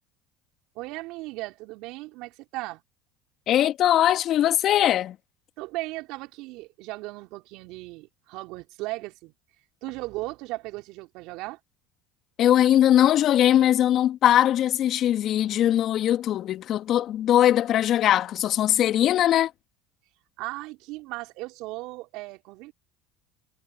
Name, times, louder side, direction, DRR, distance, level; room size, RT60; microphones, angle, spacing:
voice 1, 0.7-2.8 5.6-9.3 9.8-11.6 20.4-22.7, right 21 dB, 65° right, 3.4 m, -36 dB
voice 2, 3.5-5.2 12.4-19.5, left 11 dB, 50° left, 1.8 m, -21 dB
hypercardioid pair, 75°, 0 cm